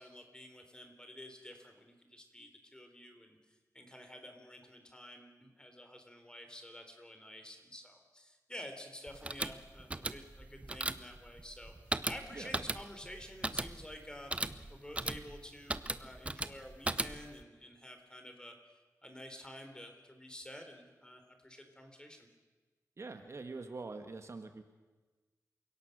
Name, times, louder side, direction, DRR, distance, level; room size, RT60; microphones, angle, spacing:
voice 1, 0.0-3.4 3.7-11.7 12.1-14.3 14.7-18.5 19.0-22.3, left 1 dB, 15° left, 5 dB, 3.5 m, -50 dB
sound 1, 9.1-17.4, right 2 dB, 20° right, 0.8 m, -38 dB
voice 2, 23.0-24.6, right 3 dB, 50° right, 7 dB, 1.6 m, -44 dB
28.5 x 17.5 x 6.6 m, 1.3 s
wide cardioid pair, 105°, 6 cm